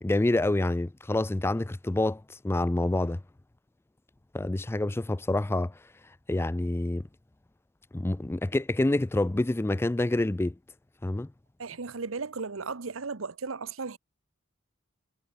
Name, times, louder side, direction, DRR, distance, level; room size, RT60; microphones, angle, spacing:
voice 1, 0.0-3.2 4.3-5.7 6.3-7.0 7.9-10.5 11.0-11.3, left 2 dB, 10° left, 0.4 m, -27 dB
voice 2, 11.6-14.0, right 4 dB, 70° right, 1.0 m, -35 dB
head